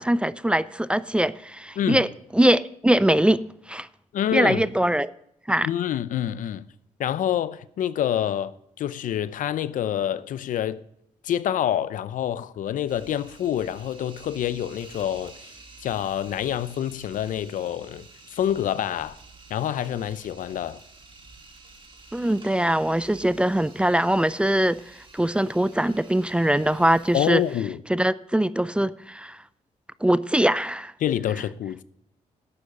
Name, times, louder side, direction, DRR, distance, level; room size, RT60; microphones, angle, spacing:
voice 1, 0.0-2.1 2.3-3.4 3.7-3.9 4.3-5.1 5.5-5.7 22.1-24.8 25.1-27.4 27.9-29.4 30.0-30.9, right 1 dB, 10° right, 0.4 m, -22 dB
voice 2, 1.8-2.1 4.1-4.7 5.6-6.6 7.0-10.8 11.2-15.5 15.8-18.0 18.3-19.2 19.5-20.8 27.1-27.8 31.0-31.8, left 10 dB, 75° left, 0.6 m, -27 dB
sound 1, 12.9-27.6, right 3 dB, 40° right, 2.6 m, -50 dB
11.5 x 8.6 x 5.3 m
cardioid pair, 85°, 14 cm